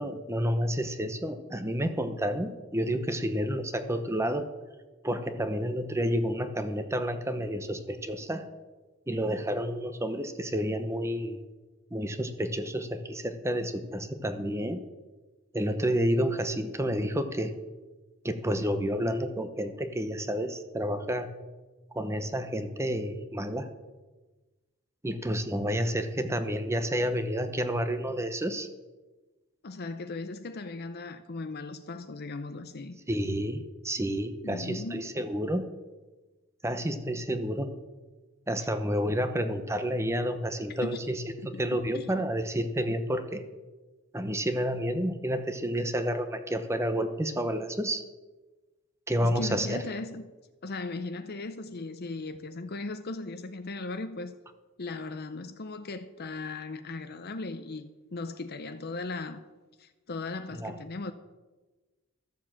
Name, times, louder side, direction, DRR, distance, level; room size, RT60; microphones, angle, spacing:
voice 1, 0.0-4.5 5.0-8.4 9.1-11.4 11.9-14.8 15.5-17.5 18.2-21.3 21.9-23.7 25.0-28.7 33.1-35.6 36.6-37.7 38.5-43.4 44.1-48.0 49.1-49.8 60.6-60.7, equal, 15° right, 0.8 m, -30 dB
voice 2, 29.6-33.0 34.4-35.1 40.8-40.9 41.5-41.6 41.9-42.1 49.2-50.3 50.6-54.4 54.8-59.4 59.8-61.1, left 3 dB, 50° left, 0.7 m, -37 dB
13.5 x 7.3 x 7.4 m
head